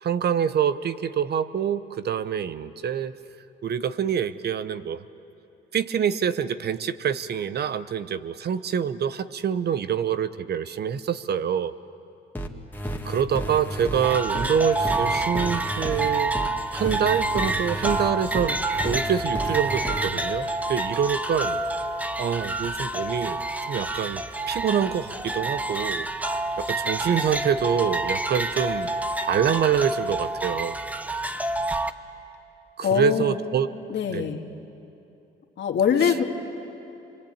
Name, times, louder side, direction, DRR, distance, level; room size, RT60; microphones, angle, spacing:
voice 1, 0.0-3.1 3.6-5.0 5.7-11.7 13.0-16.4 16.7-21.6 22.2-23.4 23.7-26.1 26.6-28.9 29.3-30.8 32.8-33.7 34.1-34.3 36.0-36.1, right 8 dB, 55° right, 13 dB, 0.9 m, -26 dB
sound 1, 12.3-20.1, right 1 dB, 10° left, 2.0 m, -32 dB
sound 2, 14.0-31.9, right 2 dB, 5° right, 1.0 m, -28 dB
voice 2, 32.8-33.4 33.9-34.4 35.6-36.2, left 7 dB, 60° left, 3 dB, 2.1 m, -23 dB
26.0 x 24.0 x 8.8 m, 2.8 s
cardioid pair, 90°, 20 cm